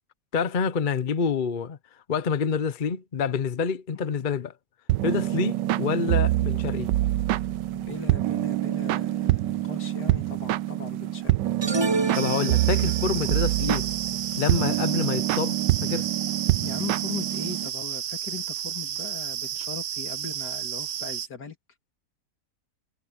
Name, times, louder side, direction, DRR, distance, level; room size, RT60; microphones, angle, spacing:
voice 1, 0.3-1.8 2.1-4.5 5.0-6.9 12.2-13.9 14.4-16.1, left 6 dB, 40° left, 0.7 m, -27 dB
sound 1, 4.9-17.7, right 15 dB, 85° right, 1.2 m, -26 dB
voice 2, 7.7-11.4 16.6-21.6, left 6 dB, 65° left, 3.0 m, -39 dB
sound 2, 11.6-13.2, right 3 dB, 35° right, 0.4 m, -28 dB
sound 3, 12.1-21.3, right 10 dB, 60° right, 0.7 m, -32 dB
omnidirectional pair, 1.9 m